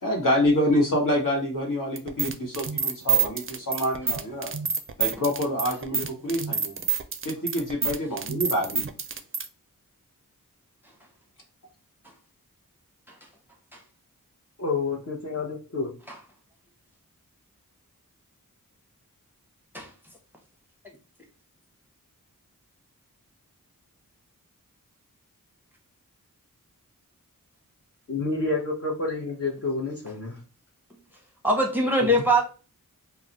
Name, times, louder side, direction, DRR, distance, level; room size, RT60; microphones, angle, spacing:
voice 1, 0.0-4.5 5.0-6.7 7.2-8.9, left 1 dB, 65° left, -1 dB, 1.1 m, -26 dB
sound 1, 2.0-9.5, right 7 dB, 40° right, 0.4 m, -27 dB
voice 2, 14.6-15.9 28.1-30.4 32.0-32.1, left 3 dB, 45° left, -3 dB, 0.7 m, -29 dB
voice 3, 31.4-32.4, right 1 dB, 5° right, 1 dB, 0.7 m, -22 dB
2.3 x 2.0 x 3.8 m, 0.36 s
wide cardioid pair, 45°, 34 cm